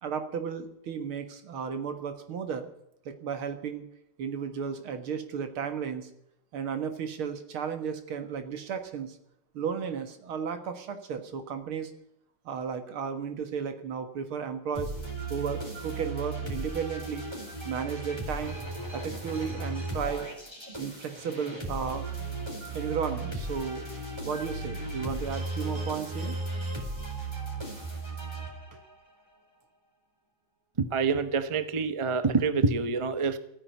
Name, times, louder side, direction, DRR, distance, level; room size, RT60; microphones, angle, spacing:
voice 1, 0.0-2.7 3.1-3.9 4.2-6.1 6.5-9.2 9.5-11.9 12.5-14.9 15.3-17.3 17.7-18.6 18.9-20.3 20.8-22.1 22.7-23.8 24.2-26.4 28.7-28.8, right 6 dB, 75° right, 8 dB, 2.5 m, -34 dB
sound 1, 14.7-29.0, right 2 dB, 10° right, 4.0 m, -36 dB
voice 2, 30.8-33.4, right 4 dB, 35° right, 11 dB, 0.5 m, -26 dB
15.0 x 9.7 x 9.4 m, 0.77 s
omnidirectional pair, 2.4 m